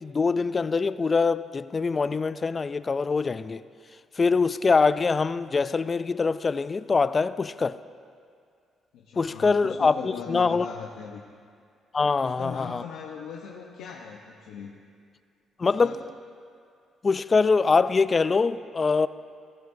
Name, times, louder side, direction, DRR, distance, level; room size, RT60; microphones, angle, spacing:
voice 1, 0.0-3.6 4.2-7.8 9.2-10.7 11.9-12.8 15.6-16.0 17.0-19.1, left 4 dB, 35° left, 0.3 m, -23 dB
voice 2, 8.9-11.2 12.0-14.7 15.6-16.0, left 7 dB, 90° left, 0.8 m, -39 dB
15.5 x 15.0 x 2.7 m
cardioid pair, 90°, 0 cm